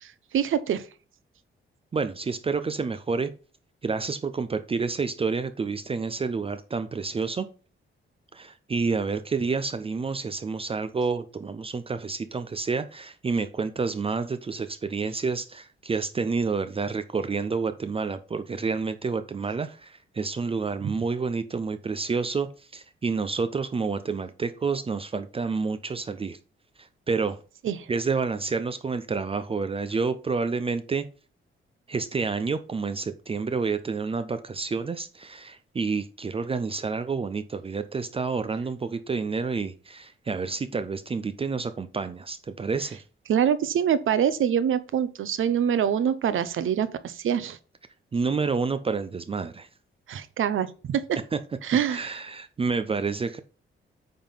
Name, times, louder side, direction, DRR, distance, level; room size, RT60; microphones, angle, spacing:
voice 1, 0.3-0.8 27.6-27.9 43.3-47.6 50.1-51.0 51.6-52.2, right 8 dB, 75° right, 0.8 m, -25 dB
voice 2, 1.9-3.3 3.8-7.5 8.3-22.5 22.7-26.4 27.1-27.4 27.9-31.0 31.9-43.0 48.1-49.7 51.3-51.4 51.9-53.4, right 4 dB, 25° right, 0.5 m, -29 dB
8.8 x 3.7 x 5.6 m
wide cardioid pair, 150°, 21 cm